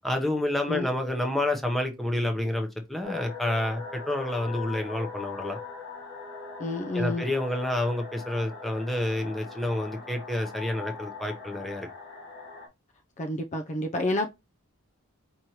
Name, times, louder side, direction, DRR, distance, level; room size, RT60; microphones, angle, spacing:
voice 1, 0.0-5.6 6.9-11.9, left 1 dB, ahead, 0.7 m, -29 dB
sound 1, 3.0-12.7, left 5 dB, 50° left, 1.3 m, -41 dB
voice 2, 6.6-7.3 13.2-14.3, left 1 dB, 35° left, 0.4 m, -29 dB
5.2 x 3.0 x 2.9 m
head